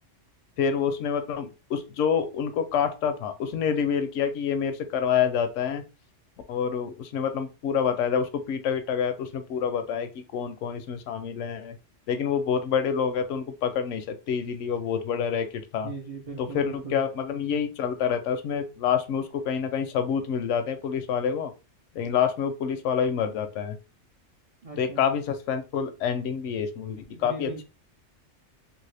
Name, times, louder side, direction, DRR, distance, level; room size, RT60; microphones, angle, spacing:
voice 1, 0.6-5.8 6.5-11.7 12.1-15.9 16.4-21.5 21.9-23.8 24.8-27.6, left 7 dB, 80° left, 8 dB, 0.9 m, -27 dB
voice 2, 15.8-17.0 24.6-25.0 27.1-27.6, right 3 dB, 45° right, 2 dB, 0.4 m, -39 dB
3.0 x 2.7 x 3.2 m, 0.30 s
omnidirectional pair, 1.3 m